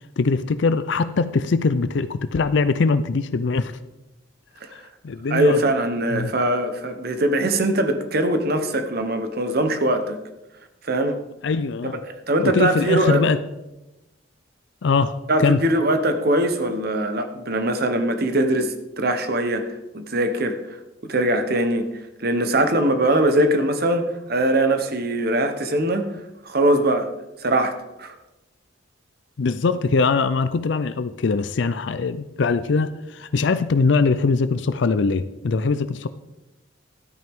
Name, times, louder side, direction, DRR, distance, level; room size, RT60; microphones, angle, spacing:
voice 1, 0.2-3.8 4.7-5.6 6.1-6.3 11.4-12.0 12.4-13.4 14.8-15.6 29.4-36.1, left 4 dB, 60° left, 13 dB, 0.4 m, -22 dB
voice 2, 5.3-10.2 10.8-11.2 12.0-13.2 15.3-20.8 21.1-21.9 22.2-26.1 26.4-27.1 27.4-28.2, right 1 dB, 50° right, 8 dB, 1.0 m, -21 dB
13.5 x 9.2 x 3.6 m, 1.0 s
head